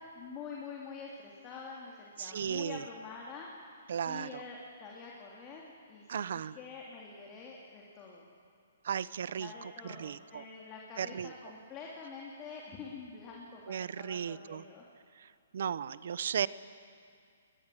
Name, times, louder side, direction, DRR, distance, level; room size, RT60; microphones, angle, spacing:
voice 1, 0.1-3.5 4.0-8.2 9.4-14.8, left 5 dB, 25° left, -2 dB, 2.8 m, -46 dB
voice 2, 2.2-2.8 3.9-4.4 6.1-6.6 8.8-10.5 11.0-11.3 13.7-14.6 15.5-16.5, right 8 dB, 65° right, 18 dB, 0.7 m, -35 dB
21.5 x 20.5 x 10.0 m, 2.3 s
hypercardioid pair, 155°, 0 cm